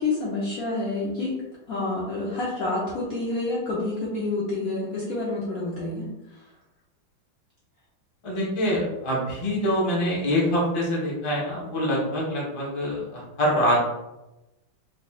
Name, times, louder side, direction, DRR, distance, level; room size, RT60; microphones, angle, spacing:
voice 1, 0.0-1.3 1.7-6.4, left 2 dB, 65° left, -6 dB, 0.9 m, -28 dB
voice 2, 8.2-13.9, equal, 25° left, -5 dB, 0.6 m, -25 dB
4.0 x 3.2 x 2.3 m, 0.97 s
omnidirectional pair, 2.2 m